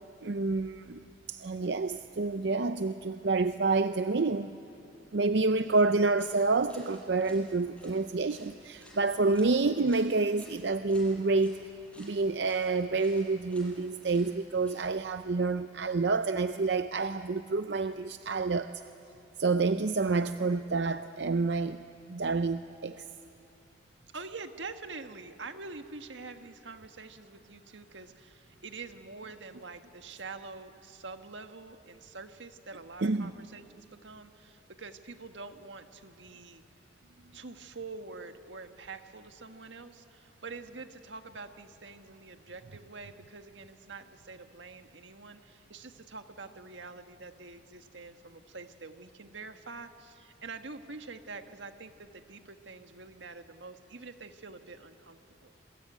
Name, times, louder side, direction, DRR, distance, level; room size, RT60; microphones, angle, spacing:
voice 1, 0.2-1.0 1.3-4.6 5.1-11.6 12.0-18.7 19.4-23.0 33.0-33.3, right 3 dB, 65° right, 10 dB, 0.6 m, -28 dB
voice 2, 1.6-2.0 24.1-36.6 37.3-55.5, right 4 dB, 90° right, 7 dB, 1.5 m, -46 dB
sound 1, 6.2-15.2, equal, 5° left, 6.2 m, -57 dB
27.0 x 23.0 x 9.2 m, 2.7 s
head